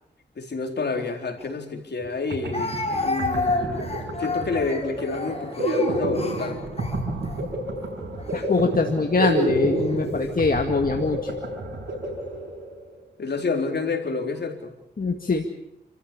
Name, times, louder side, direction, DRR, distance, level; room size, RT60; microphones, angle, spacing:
voice 1, 0.4-3.9 4.2-6.6 13.2-14.8, left 4 dB, 70° left, 4 dB, 4.1 m, -29 dB
Speech, 1.4-1.5 2.5-7.4 8.2-8.4 9.4-10.0, left 3 dB, 35° left, 4.3 m, -30 dB
sound 1, 2.0-2.1 2.3-12.9, right 1 dB, 85° right, 6.9 m, -29 dB
voice 2, 8.3-11.3 15.0-15.5, left 3 dB, 55° left, 3 dB, 2.1 m, -23 dB
28.5 x 14.0 x 8.6 m, 0.85 s
cardioid pair, 55°, 18 cm